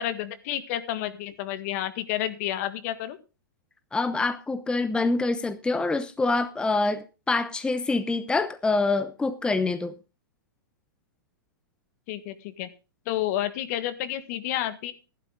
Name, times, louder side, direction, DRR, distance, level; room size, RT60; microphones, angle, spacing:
voice 1, 0.0-3.2 12.1-12.7 13.0-14.9, left 12 dB, 50° left, 13 dB, 1.6 m, -30 dB
voice 2, 3.9-9.9, left 3 dB, 10° left, 12 dB, 0.8 m, -26 dB
13.5 x 11.5 x 3.8 m, 0.31 s
hypercardioid pair, 115°, 11 cm